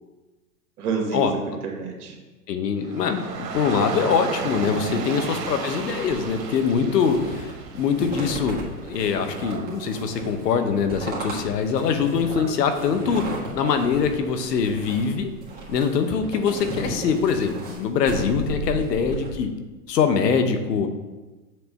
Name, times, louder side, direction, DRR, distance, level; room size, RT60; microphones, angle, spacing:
voice 1, 0.8-2.2 4.9-5.2 18.5-18.8, right 5 dB, 65° right, 1 dB, 1.9 m, -30 dB
voice 2, 2.5-13.3 13.6-15.3 15.7-19.5 19.9-20.9, left 6 dB, 80° left, 7 dB, 1.0 m, -23 dB
Dog / Rain, 2.8-15.0, right 6 dB, 85° right, 1.2 m, -36 dB
sound 1, 5.7-19.4, right 2 dB, 20° right, 1.6 m, -35 dB
7.7 x 3.3 x 5.3 m, 1.2 s
hypercardioid pair, 140°, 48 cm